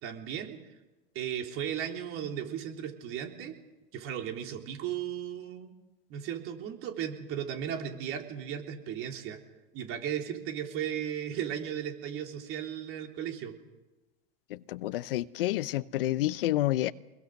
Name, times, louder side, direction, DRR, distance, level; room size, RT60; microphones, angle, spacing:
voice 1, 0.0-0.6 1.1-3.6 3.9-5.7 6.1-9.4 9.7-13.5, right 9 dB, 50° right, 3.6 m, -36 dB
voice 2, 14.5-16.9, left 15 dB, 70° left, 0.8 m, -29 dB
24.5 x 22.0 x 6.6 m
hypercardioid pair, 95°, 29 cm